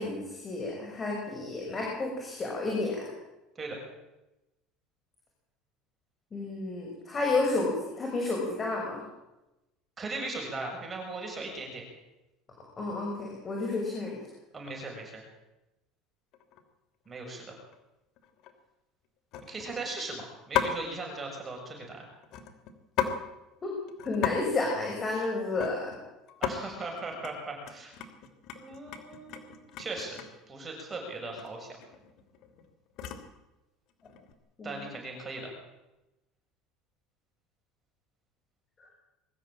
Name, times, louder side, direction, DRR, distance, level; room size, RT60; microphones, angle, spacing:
voice 1, 0.0-3.1 6.3-9.0 12.8-14.2 23.6-23.7 24.0-25.9 34.6-34.8, left 3 dB, 25° left, -1 dB, 6.3 m, -31 dB
voice 2, 10.0-11.8 14.5-15.2 17.1-17.6 19.5-22.1 26.4-27.9 28.6-30.2 30.5-31.7 34.6-35.5, right 3 dB, 20° right, 0 dB, 6.8 m, -38 dB
sound 1, 16.3-16.6 17.1-17.4 17.7-17.8 18.2-18.5 19.3-19.8 20.5-20.9 22.2-23.2 23.5-23.6 23.9-24.4 24.6-26.0 26.3-26.6 27.0-27.3 27.6-30.4 31.3-31.5 31.8-33.3 34.0-34.3, left 9 dB, 55° left, 3.0 m, -35 dB
23.0 x 13.5 x 9.0 m, 0.96 s
cardioid pair, 135°, 0 cm